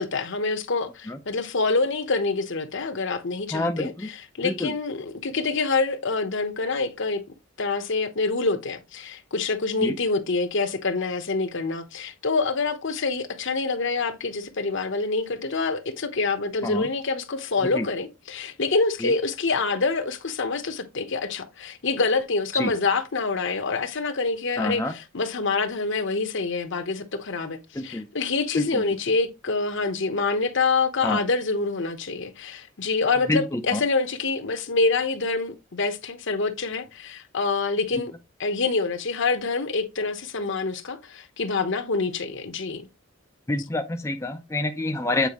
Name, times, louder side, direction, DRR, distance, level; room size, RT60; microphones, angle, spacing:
voice 1, 0.0-7.2 7.6-38.1 38.4-42.8, left 3 dB, 60° left, 1.0 m, -26 dB
voice 2, 3.5-4.1 4.4-4.7 9.8-9.9 16.6-16.9 17.8-17.9 19.0-19.1 22.5-22.7 24.6-24.9 27.7-28.1 28.5-28.8 31.0-31.2 33.3-33.8 43.5-45.3, left 2 dB, 15° left, 0.5 m, -27 dB
8.3 x 4.5 x 3.0 m
head